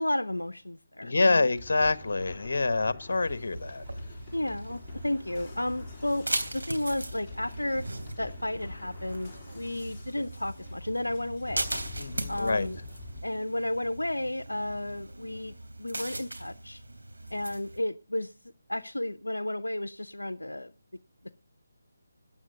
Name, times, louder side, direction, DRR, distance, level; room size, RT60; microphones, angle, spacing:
voice 1, 0.0-1.5 4.3-6.3 6.5-7.8 8.2-11.7 12.3-12.8 13.2-16.8 17.3-18.3 18.7-20.7, left 1 dB, 85° left, 0.7 m, -32 dB
voice 2, 1.0-3.8 12.0-12.7, left 3 dB, 55° left, 1.2 m, -26 dB
sound 1, 1.5-13.2, left 3 dB, 10° left, 3.7 m, -46 dB
sound 2, 3.1-17.8, right 2 dB, 75° right, 3.3 m, -39 dB
14.0 x 9.2 x 7.9 m
figure-of-eight pair, 150°, 0 cm